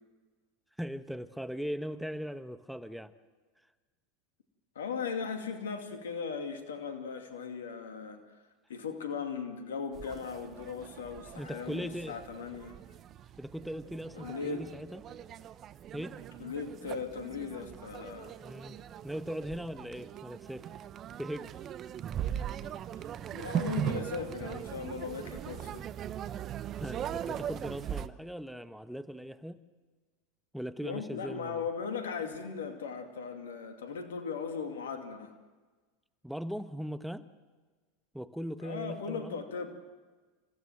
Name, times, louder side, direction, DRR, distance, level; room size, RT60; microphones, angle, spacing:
voice 1, 0.8-3.1 11.4-12.1 13.4-15.0 15.9-16.2 18.4-18.8 19.0-20.7 21.2-21.5 22.4-22.5 26.8-29.6 30.5-31.7 36.2-37.3 38.1-39.4, equal, ahead, 11 dB, 1.1 m, -39 dB
voice 2, 4.7-8.2 8.7-12.8 14.1-14.7 16.4-18.4 23.3-25.8 30.8-35.3 38.6-39.8, left 6 dB, 80° left, 5 dB, 2.6 m, -38 dB
sound 1, 9.9-28.1, right 10 dB, 40° right, 1.0 m, -40 dB
29.0 x 16.0 x 7.5 m, 1.4 s
hypercardioid pair, 90°, 0 cm